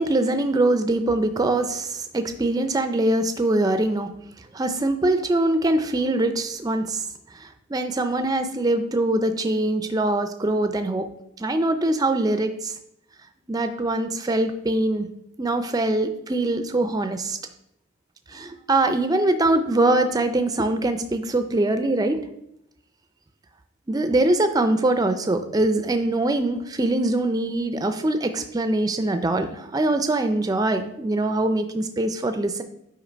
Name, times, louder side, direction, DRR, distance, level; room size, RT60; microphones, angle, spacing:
voice 1, 0.0-4.1 4.5-7.1 7.3-11.0 11.4-12.7 13.5-15.1 15.4-17.4 18.3-22.2 23.9-32.6, right 2 dB, 15° right, 8 dB, 0.3 m, -23 dB
8.3 x 2.9 x 5.0 m, 0.78 s
head